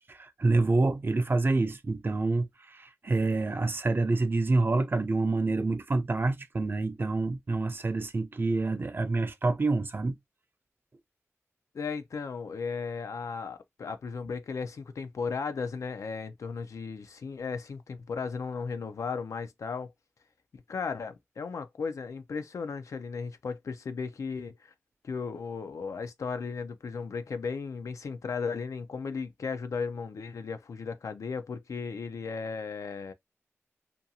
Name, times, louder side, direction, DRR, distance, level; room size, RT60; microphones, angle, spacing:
voice 1, 0.1-10.2, right 3 dB, 40° right, 0.4 m, -27 dB
voice 2, 11.7-19.9 20.5-24.7 25.0-33.1, left 5 dB, 80° left, 0.4 m, -35 dB
2.5 x 2.3 x 2.7 m
cardioid pair, 55°, 5 cm